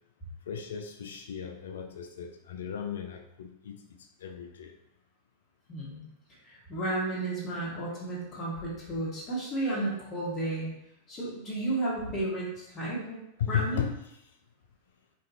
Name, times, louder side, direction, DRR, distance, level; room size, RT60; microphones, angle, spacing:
voice 1, 0.5-4.7 13.4-14.2, left 8 dB, 65° left, 4 dB, 0.3 m, -35 dB
voice 2, 5.7-6.1 6.4-10.7 11.1-13.2 13.5-13.9, right 2 dB, 30° left, -5 dB, 1.2 m, -33 dB
3.1 x 2.5 x 2.7 m, 0.82 s
figure-of-eight pair, 90°, 0 cm